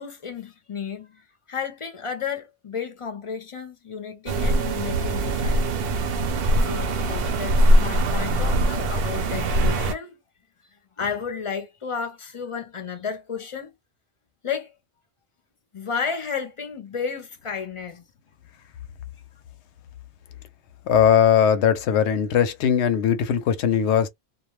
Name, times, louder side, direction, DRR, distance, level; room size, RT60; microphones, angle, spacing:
voice 1, 0.0-5.9 6.6-10.2 11.0-13.7 14.4-14.7 15.7-18.0, left 6 dB, 35° left, 0.6 m, -33 dB
sound 1, 4.3-9.9, right 1 dB, 65° right, 0.8 m, -22 dB
voice 2, 20.9-24.1, left 8 dB, 85° left, 0.9 m, -19 dB
2.4 x 2.2 x 3.0 m
omnidirectional pair, 1.1 m